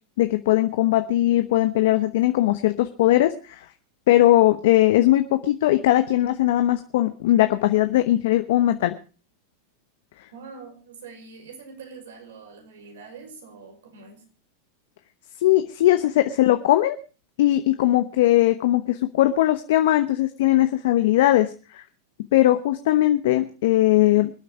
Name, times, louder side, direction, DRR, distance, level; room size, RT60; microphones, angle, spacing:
voice 1, 0.2-3.6 4.1-8.9 15.4-17.0 17.4-21.8 22.3-24.3, left 14 dB, 70° left, 9 dB, 1.0 m, -19 dB
voice 2, 10.3-14.2, right 5 dB, 75° right, 5 dB, 5.2 m, -44 dB
25.0 x 8.6 x 4.5 m, 0.36 s
hypercardioid pair, 105°, 0 cm